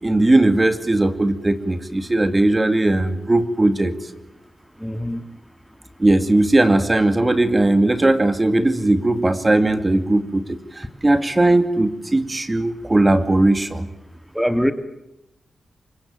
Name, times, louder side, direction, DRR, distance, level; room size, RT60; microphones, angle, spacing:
voice 1, 0.0-3.9 6.0-13.9, right 2 dB, 25° right, 10 dB, 2.5 m, -18 dB
voice 2, 4.8-5.2 14.4-14.7, equal, ahead, 9 dB, 1.9 m, -21 dB
25.0 x 22.5 x 9.1 m, 0.88 s
supercardioid pair, 45°, 0 cm